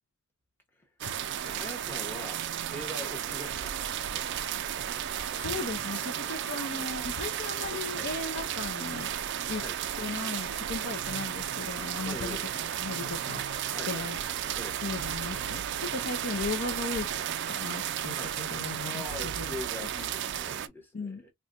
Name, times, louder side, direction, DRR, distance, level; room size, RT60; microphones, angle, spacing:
sound 1, 1.0-20.7, right 10 dB, 50° right, 0.3 m, -34 dB
voice 1, 1.4-2.4 2.7-3.7 9.6-9.8 12.0-12.5 13.7-14.1 14.6-14.8 18.1-18.3 18.8-21.3, left 1 dB, 10° left, 0.9 m, -42 dB
voice 2, 5.3-9.1 9.5-9.6 10.0-14.2 14.8-17.1 17.5-19.5 20.9-21.2, left 4 dB, 50° left, 0.5 m, -37 dB
4.2 x 2.2 x 2.5 m
head